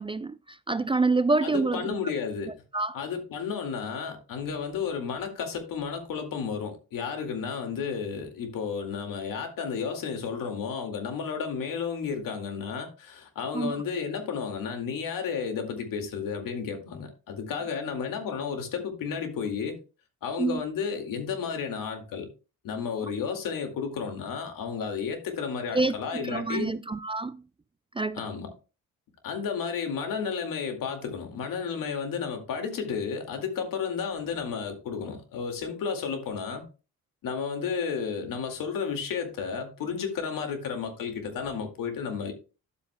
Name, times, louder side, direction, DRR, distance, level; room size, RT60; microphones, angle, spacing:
voice 1, 0.0-2.0 2.7-3.0 13.5-13.8 20.4-20.6 25.7-27.4 28.0-28.2, right 3 dB, 15° right, 0.4 m, -27 dB
voice 2, 1.4-2.6 2.9-19.8 20.2-22.3 22.6-26.8 28.1-28.5 29.2-36.6 37.2-42.3, left 6 dB, 75° left, 2.2 m, -32 dB
11.0 x 7.8 x 2.2 m
supercardioid pair, 70°, 34 cm